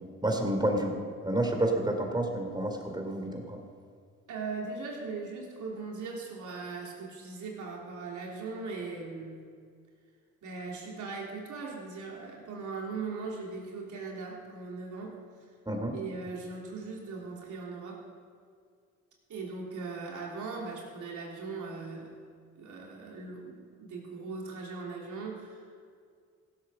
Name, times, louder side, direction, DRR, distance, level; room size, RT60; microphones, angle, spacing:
voice 1, 0.2-0.9 1.2-3.6 15.7-16.0, right 1 dB, 15° right, 3 dB, 2.9 m, -29 dB
voice 2, 4.3-9.5 10.4-15.2 15.9-18.1 19.3-22.2 22.6-25.8, right 4 dB, 70° right, -2 dB, 3.4 m, -39 dB
16.0 x 8.3 x 6.7 m, 2.1 s
cardioid pair, 70°, 31 cm